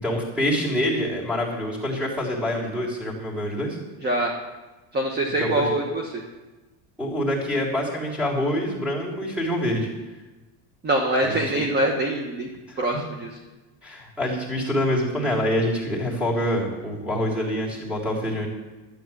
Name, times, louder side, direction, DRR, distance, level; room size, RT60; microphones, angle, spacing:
voice 1, 0.0-3.8 5.4-5.7 7.0-9.9 11.2-11.6 12.7-12.8 13.8-18.5, equal, 5° right, -2 dB, 3.6 m, -26 dB
voice 2, 4.0-4.3 4.9-6.2 10.8-12.5 12.8-13.3, right 1 dB, 25° right, 2 dB, 1.4 m, -24 dB
12.5 x 8.7 x 7.6 m, 1.2 s
cardioid pair, 140°, 44 cm